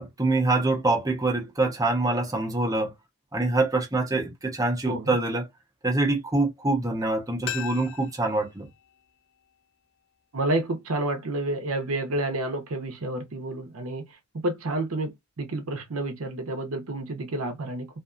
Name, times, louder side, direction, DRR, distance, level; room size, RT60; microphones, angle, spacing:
voice 1, 0.0-2.9 3.3-5.5 5.8-8.7, right 2 dB, 15° right, 0.7 m, -25 dB
sound 1, 7.4-10.2 10.5-10.6, left 10 dB, 50° left, 0.5 m, -40 dB
voice 2, 10.3-14.1 14.4-17.9, right 2 dB, 70° right, 0.7 m, -29 dB
2.5 x 2.3 x 2.4 m
head